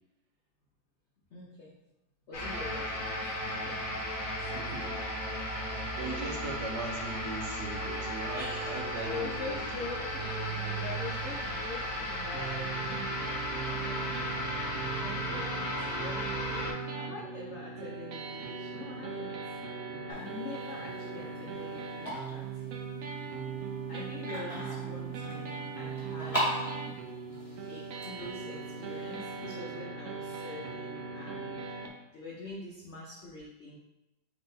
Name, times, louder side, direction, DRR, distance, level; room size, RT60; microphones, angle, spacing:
voice 1, 1.3-1.7 2.3-4.5 8.3-13.1 13.6-14.1 14.4-14.6 15.0-19.4 20.1-22.7 23.9-26.6 27.7-33.8, left 3 dB, 80° left, -3 dB, 0.6 m, -44 dB
sound 1, 2.3-16.7, equal, 45° left, 0.7 m, -35 dB
voice 2, 4.5-5.1 5.9-9.6, right 3 dB, 65° right, 0 dB, 1.2 m, -40 dB
sound 2, 12.3-31.9, right 5 dB, 85° right, 0.7 m, -39 dB
sound 3, 20.1-29.5, equal, 20° left, 1.6 m, -40 dB
3.7 x 3.5 x 3.9 m, 0.93 s
omnidirectional pair, 2.1 m